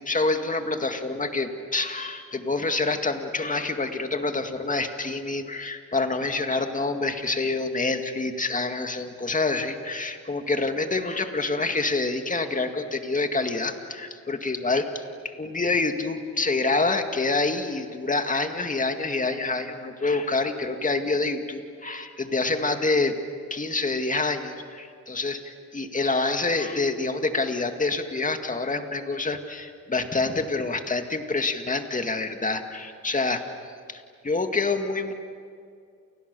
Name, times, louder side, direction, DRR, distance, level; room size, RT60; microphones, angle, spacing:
voice 1, 0.0-23.1 23.5-33.4 33.9-35.1, left 3 dB, 20° left, 6 dB, 2.1 m, -27 dB
30.0 x 29.0 x 6.9 m, 2.3 s
cardioid pair, 115°, 35 cm